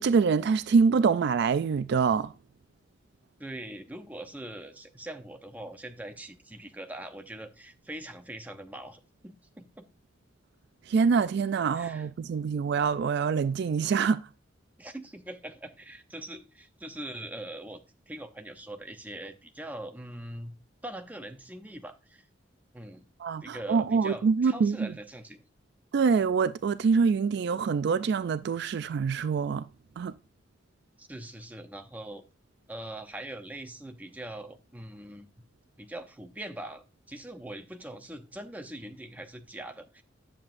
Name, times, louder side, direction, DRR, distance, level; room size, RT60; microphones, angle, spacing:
voice 1, 0.0-2.3 10.9-14.2 23.2-24.9 25.9-29.6 30.0-30.1, right 5 dB, 60° right, 0.3 m, -25 dB
voice 2, 3.4-9.8 11.7-12.1 14.8-20.5 20.8-22.3 22.7-23.1 23.4-25.4 31.0-32.2 32.7-35.3 35.8-40.0, right 1 dB, 10° right, 0.7 m, -42 dB
9.8 x 7.3 x 2.5 m
head